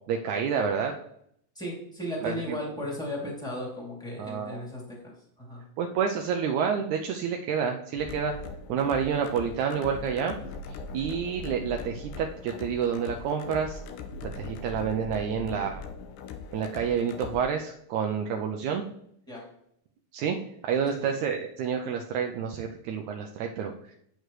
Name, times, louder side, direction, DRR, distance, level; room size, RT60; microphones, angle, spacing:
voice 1, 0.1-1.0 2.2-2.6 4.2-4.6 5.8-8.3 8.7-10.4 10.7-13.8 14.2-15.9 16.5-18.8 20.1-20.4 20.6-23.9, right 7 dB, 80° right, 3 dB, 1.8 m, -29 dB
voice 2, 1.5-5.1 5.4-5.6 19.3-19.4 20.9-21.1, left 1 dB, ahead, -4 dB, 2.0 m, -36 dB
sound 1, 8.0-17.4, left 4 dB, 75° left, 2.1 m, -40 dB
8.5 x 7.8 x 3.2 m, 0.71 s
omnidirectional pair, 3.9 m